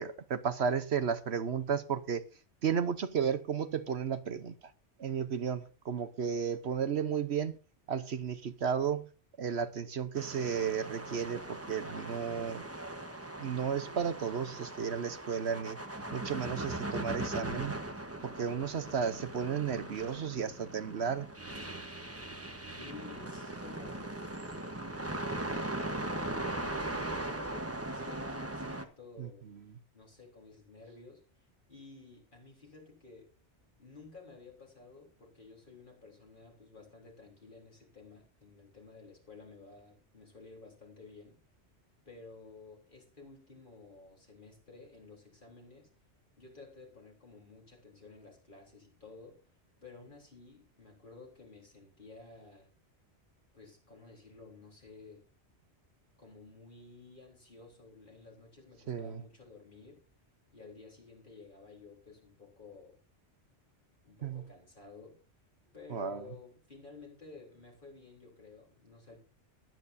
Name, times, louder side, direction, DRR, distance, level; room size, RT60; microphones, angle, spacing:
voice 1, 0.0-2.2 2.6-4.5 5.0-7.6 7.9-9.1 9.4-12.6 13.4-15.8 16.1-17.8 18.2-21.3 29.2-29.3 58.9-59.2 64.2-64.4 65.9-66.2, right 7 dB, 65° right, 1.1 m, -33 dB
sound 1, 10.1-28.9, right 1 dB, 15° right, 1.1 m, -39 dB
voice 2, 22.8-24.2 24.9-29.5 29.9-33.3 33.8-41.4 42.1-45.9 46.4-49.4 49.8-52.7 53.5-55.2 56.2-60.0 60.5-63.0 64.0-65.2 65.7-69.2, left 3 dB, 45° left, 3.9 m, -53 dB
21.5 x 9.2 x 2.7 m
omnidirectional pair, 1.2 m